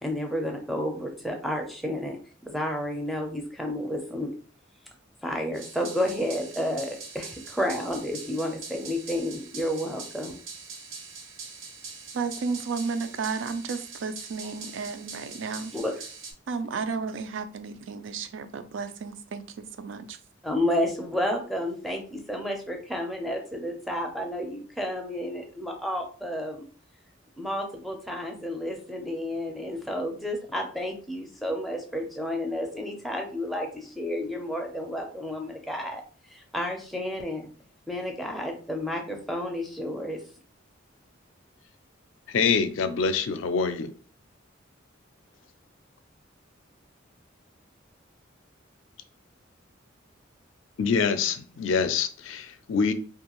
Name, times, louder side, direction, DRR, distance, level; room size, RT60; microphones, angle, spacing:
voice 1, 0.0-2.2 2.5-4.3 5.2-10.3 15.7-15.9 20.4-26.6 27.4-36.0 36.3-37.5 37.9-40.2, left 1 dB, ahead, 0.4 m, -31 dB
sound 1, 5.5-16.3, right 4 dB, 90° right, 0.7 m, -43 dB
voice 2, 12.1-15.7 16.5-20.2, right 5 dB, 70° right, 0.3 m, -33 dB
voice 3, 42.3-43.9 50.8-52.9, left 5 dB, 80° left, 0.4 m, -25 dB
2.6 x 2.3 x 2.9 m
head